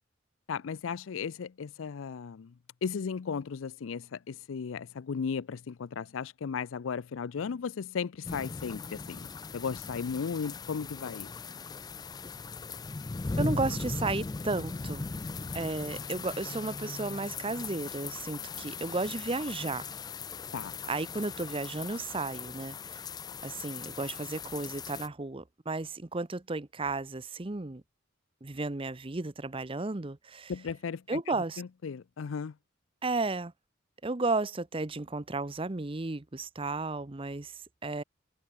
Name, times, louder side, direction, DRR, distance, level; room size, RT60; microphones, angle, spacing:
voice 1, 0.5-2.5 2.8-11.3 20.5-20.7 30.5-32.5, left 6 dB, 90° left, 0.5 m, -36 dB
sound 1, 8.2-25.1, left 4 dB, 20° left, 0.4 m, -39 dB
voice 2, 13.4-15.1 15.5-19.9 20.9-23.0 23.4-27.8 28.4-30.5 31.1-31.6 33.0-33.5 34.0-38.0, right 3 dB, 25° right, 0.8 m, -33 dB
head